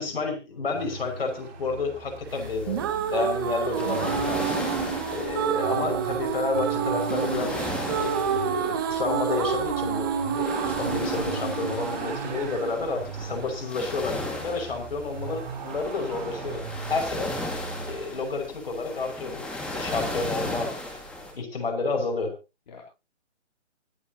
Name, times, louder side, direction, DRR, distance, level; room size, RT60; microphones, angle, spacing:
voice 1, 0.0-4.6 5.1-7.6 8.0-17.4 17.9-20.7 21.3-22.3, left 3 dB, 50° left, 4 dB, 6.0 m, -30 dB
Vehicle, 0.7-18.0, right 6 dB, 35° right, 4.9 m, -40 dB
sound 1, 2.3-21.3, left 1 dB, 5° left, 2.0 m, -37 dB
sound 2, 2.4-13.5, right 7 dB, 20° right, 1.3 m, -29 dB
voice 2, 12.3-12.6 22.7-22.8, left 5 dB, 35° left, -1 dB, 3.3 m, -48 dB
25.0 x 9.0 x 2.9 m, 0.29 s
hypercardioid pair, 165°, 36 cm